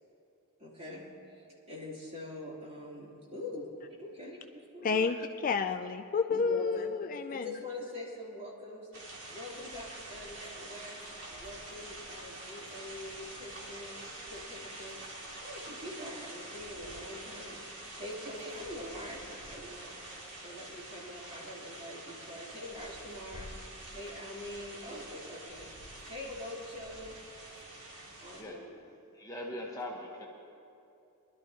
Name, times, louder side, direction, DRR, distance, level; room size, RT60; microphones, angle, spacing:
voice 1, 0.6-4.4 4.7-5.0 6.3-6.9 7.3-8.9 9.3-19.9 20.4-25.7 26.1-27.1 28.2-28.8, left 1 dB, 30° right, -6 dB, 3.3 m, -44 dB
voice 2, 4.8-7.5, left 5 dB, 40° left, 7 dB, 0.4 m, -30 dB
sound 1, 8.9-28.4, right 1 dB, 60° right, 2.5 m, -46 dB
voice 3, 28.3-28.6 29.2-30.3, left 1 dB, 15° left, -2 dB, 1.2 m, -40 dB
22.5 x 12.0 x 2.9 m, 2.6 s
head